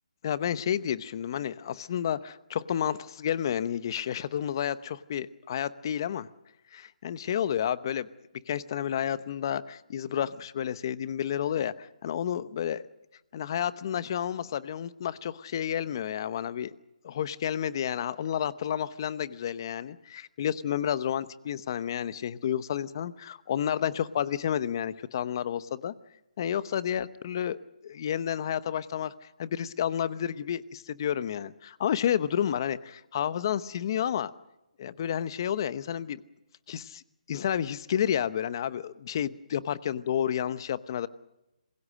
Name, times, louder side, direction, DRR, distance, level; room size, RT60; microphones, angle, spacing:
voice 1, 0.2-6.3 6.7-8.1 8.5-12.9 13.3-16.7 17.0-25.9 26.4-29.1 29.4-34.3 34.8-36.2 36.7-37.0 37.3-41.1, left 9 dB, 30° left, 16 dB, 0.9 m, -30 dB
27.0 x 21.5 x 6.5 m, 0.93 s
hypercardioid pair, 165°, 4 cm